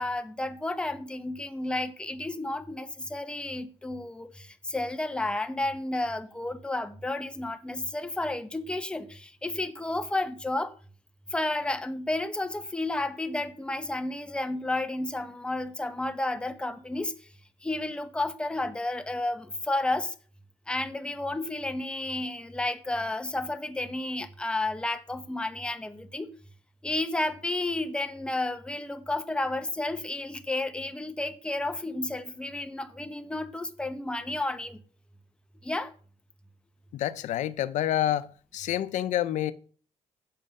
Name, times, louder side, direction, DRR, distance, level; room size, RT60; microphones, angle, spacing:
voice 1, 0.0-10.8 11.3-17.3 17.6-20.1 20.7-26.3 26.8-34.8 35.6-35.9, left 2 dB, 10° left, 0.8 m, -32 dB
voice 2, 36.9-38.3 38.5-39.5, left 12 dB, 90° left, 0.6 m, -28 dB
8.5 x 7.6 x 5.4 m
cardioid pair, 135°, 12 cm